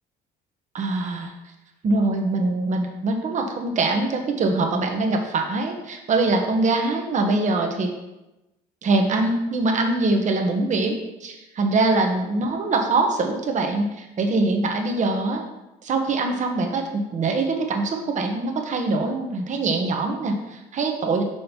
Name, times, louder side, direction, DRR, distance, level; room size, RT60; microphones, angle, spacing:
voice 1, 0.7-1.3 1.8-7.9 8.8-15.4 15.8-21.2, right 3 dB, 45° right, 3 dB, 1.3 m, -23 dB
6.3 x 5.2 x 4.5 m, 0.98 s
cardioid pair, 110°, 17 cm